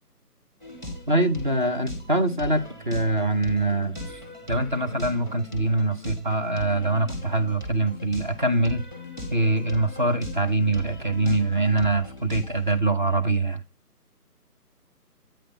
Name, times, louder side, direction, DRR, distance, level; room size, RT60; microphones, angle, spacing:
sound 1, 0.6-12.8, equal, 10° right, 1.5 m, -38 dB
voice 1, 1.1-4.2 4.5-8.8 9.3-13.6, right 2 dB, 30° right, 0.8 m, -24 dB
8.9 x 3.3 x 6.4 m
figure-of-eight pair, 160°, 47 cm